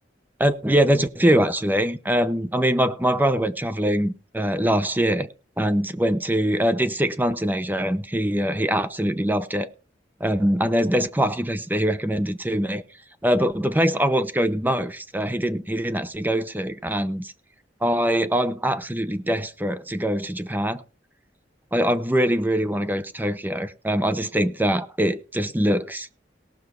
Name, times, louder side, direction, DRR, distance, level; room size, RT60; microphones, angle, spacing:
voice 1, 0.4-9.7 10.2-12.8 13.2-17.3 17.8-20.8 21.7-26.1, equal, 10° right, 0.8 m, -23 dB
18.0 x 6.7 x 4.5 m
head